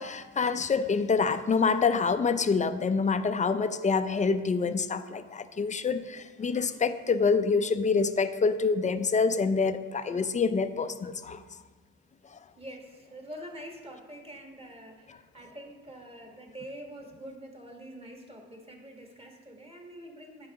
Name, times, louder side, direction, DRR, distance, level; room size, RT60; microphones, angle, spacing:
voice 1, 0.0-11.4 12.3-12.4, left 5 dB, 25° left, 11 dB, 0.5 m, -26 dB
voice 2, 12.6-20.5, equal, 20° right, 1 dB, 1.6 m, -45 dB
8.8 x 5.4 x 4.7 m, 1.4 s
cardioid pair, 90°, 30 cm